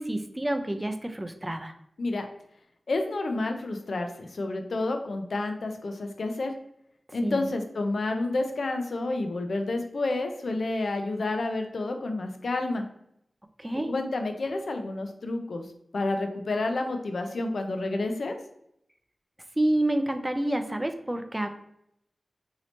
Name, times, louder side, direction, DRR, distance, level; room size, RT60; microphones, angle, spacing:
voice 1, 0.0-1.7 7.2-7.5 13.6-13.9 19.6-21.5, right 1 dB, 20° right, 7 dB, 0.4 m, -28 dB
voice 2, 2.9-6.5 7.1-12.8 13.9-15.7 15.9-18.4, left 2 dB, 75° left, 5 dB, 0.4 m, -29 dB
3.1 x 2.7 x 2.8 m, 0.77 s
wide cardioid pair, 60°, 0 cm